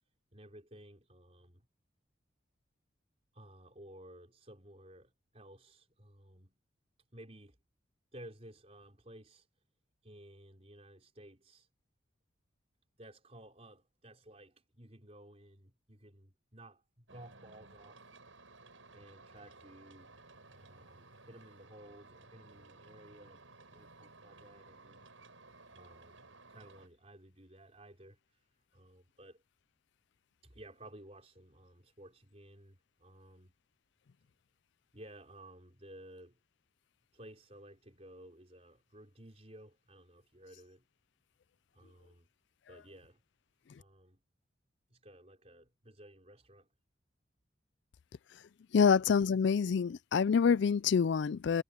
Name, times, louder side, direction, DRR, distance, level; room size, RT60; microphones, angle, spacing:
voice 1, 0.3-1.6 3.3-6.6 7.1-7.6 8.1-9.5 10.0-11.7 13.0-18.0 18.9-20.1 20.5-23.4 23.7-25.0 25.7-28.5 28.7-29.4 30.4-33.6 34.9-36.4 37.1-40.8 41.7-42.3 42.7-43.2 43.8-44.2 44.9-46.7 48.8-48.9, right 1 dB, 30° right, 4.7 m, -55 dB
sound 1, 17.1-26.9, right 3 dB, 80° right, 7.5 m, -57 dB
voice 2, 48.7-51.6, left 6 dB, 60° left, 0.4 m, -26 dB
head